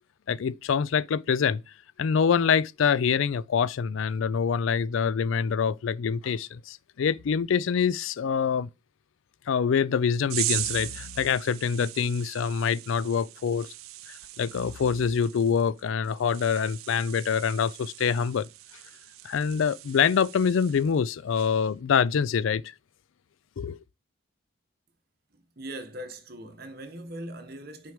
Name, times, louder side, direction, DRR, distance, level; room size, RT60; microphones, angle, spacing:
voice 1, 0.3-1.6 2.0-8.7 9.5-13.7 14.4-18.5 19.2-22.6 23.6-23.8, left 6 dB, 70° left, 0.4 m, -25 dB
sound 1, 10.3-21.0 21.3-21.7, right 17 dB, 85° right, 0.4 m, -39 dB
voice 2, 25.3-27.9, right 1 dB, 50° right, 1.1 m, -40 dB
6.2 x 4.6 x 5.0 m
head